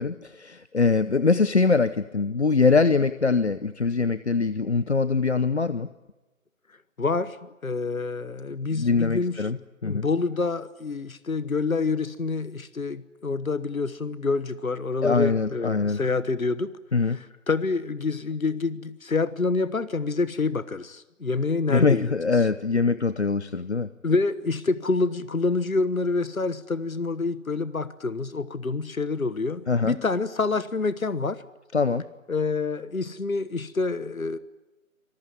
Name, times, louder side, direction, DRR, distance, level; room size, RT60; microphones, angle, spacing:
voice 1, 0.0-5.9 8.7-10.1 15.0-16.0 16.9-17.2 21.7-23.9 29.7-30.0 31.7-32.1, left 4 dB, 50° left, 15 dB, 0.9 m, -23 dB
voice 2, 7.0-9.5 9.8-16.7 17.0-22.5 24.0-31.4 32.3-34.4, left 3 dB, 75° left, 15 dB, 1.3 m, -27 dB
25.5 x 20.5 x 9.7 m, 1.1 s
figure-of-eight pair, 160°, 42 cm